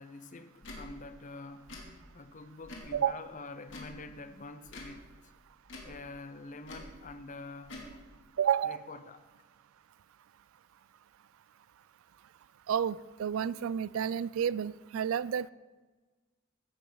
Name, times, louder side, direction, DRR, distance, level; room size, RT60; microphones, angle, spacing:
voice 1, 0.0-1.7 2.1-5.3 5.8-7.7 8.6-9.2, left 3 dB, 35° left, 0.7 m, -46 dB
Tick / Tick-tock, 0.6-0.8 1.6-1.9 2.6-2.9 3.6-4.0 4.6-4.9 5.6-5.9 6.6-6.9 7.6-7.9, left 2 dB, 60° left, 2.5 m, -46 dB
voice 2, 8.4-8.8 12.7-15.5, right 8 dB, 70° right, 0.3 m, -30 dB
16.0 x 10.5 x 3.9 m
head